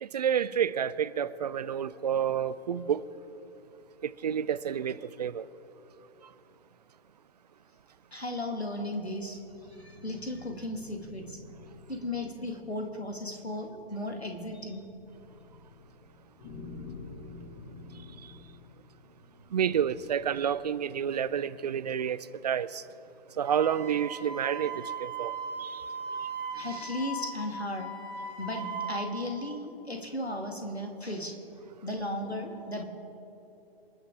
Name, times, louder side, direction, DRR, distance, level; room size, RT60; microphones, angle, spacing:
voice 1, 0.0-3.0 4.0-5.4 19.5-22.8 23.4-25.3 25.6-25.8, right 8 dB, 40° right, 0.5 m, -29 dB
voice 2, 8.1-9.4 9.7-11.4 11.9-14.9 26.5-27.9 28.4-31.4 31.8-32.8, left 1 dB, 90° left, 2.1 m, -35 dB
sound 1, 8.3-21.0, left 3 dB, 30° left, 2.5 m, -50 dB
Wind instrument woodwind instrument, 23.4-29.1, right 4 dB, 15° right, 3.0 m, -38 dB
27.5 x 9.8 x 3.7 m
figure-of-eight pair, 125°, 31 cm